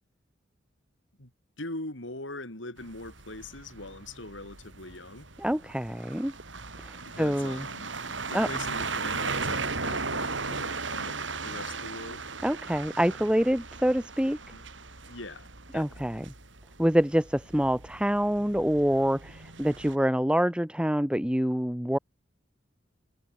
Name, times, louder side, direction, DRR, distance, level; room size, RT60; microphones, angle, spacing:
voice 1, 1.6-5.3 7.0-7.9 8.3-12.3 14.5-14.7 15.1-16.2, left 2 dB, 75° left, 5.9 m, -42 dB
sound 1, 2.8-19.9, right 4 dB, 70° right, 6.3 m, -37 dB
voice 2, 5.4-6.3 6.8-7.7 8.3-8.5 12.4-14.4 15.7-16.2 16.8-22.0, equal, 5° right, 1.2 m, -26 dB
head